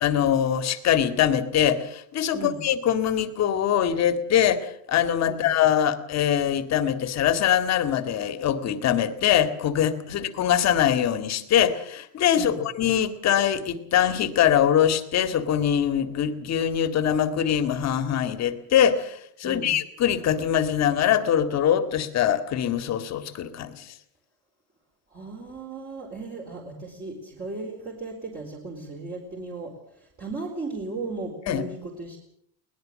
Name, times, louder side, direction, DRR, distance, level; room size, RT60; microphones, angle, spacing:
voice 1, 0.0-23.9 31.5-31.6, left 9 dB, 40° left, 11 dB, 2.1 m, -23 dB
voice 2, 19.4-19.8 25.1-32.2, right 3 dB, 20° right, -1 dB, 4.3 m, -36 dB
22.0 x 19.5 x 7.6 m, 0.68 s
cardioid pair, 155°, 42 cm